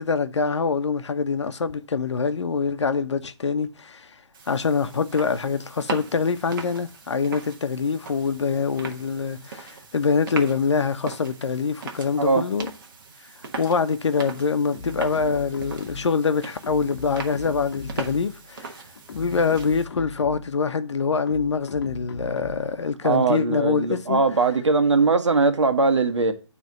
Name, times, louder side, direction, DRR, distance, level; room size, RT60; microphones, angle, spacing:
voice 1, 0.0-4.1 4.5-12.7 13.6-18.8 19.1-24.2, left 5 dB, 70° left, 0.9 m, -25 dB
sound 1, 4.3-19.9, right 4 dB, 45° right, 1.4 m, -39 dB
sound 2, 14.7-16.3 16.6-18.4 19.0-20.6 21.3-22.8, left 3 dB, 50° left, 1.1 m, -38 dB
voice 2, 23.0-26.3, right 4 dB, 75° right, 1.4 m, -20 dB
9.3 x 3.4 x 5.6 m
hypercardioid pair, 160°, 15 cm